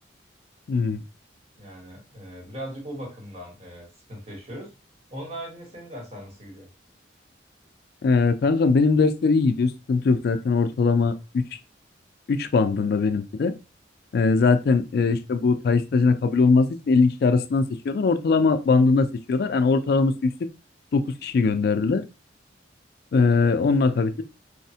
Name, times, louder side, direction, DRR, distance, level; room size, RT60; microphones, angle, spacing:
voice 1, 0.7-1.0 8.0-11.4 12.3-13.5 14.1-20.3 20.9-22.0 23.1-24.2, left 4 dB, 55° left, 9 dB, 0.3 m, -21 dB
voice 2, 1.6-4.7 5.1-6.7, equal, 35° right, -2 dB, 1.0 m, -39 dB
3.1 x 2.0 x 2.7 m, 0.28 s
head